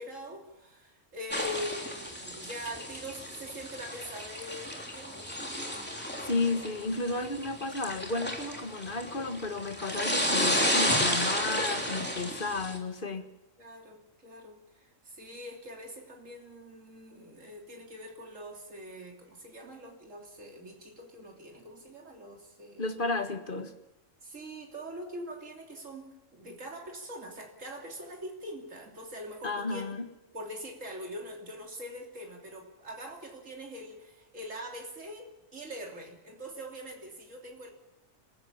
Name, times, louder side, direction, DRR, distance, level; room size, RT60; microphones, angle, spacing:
voice 1, 0.0-5.3 13.6-22.9 24.2-26.1 26.3-30.0 30.3-37.7, equal, 75° right, 1 dB, 3.5 m, -43 dB
sound 1, 1.3-12.8, equal, 10° left, 3.2 m, -32 dB
voice 2, 5.9-13.3 22.8-23.7 29.4-30.1, left 3 dB, 40° left, 7 dB, 1.8 m, -33 dB
26.5 x 15.5 x 7.3 m, 1.0 s
omnidirectional pair, 1.3 m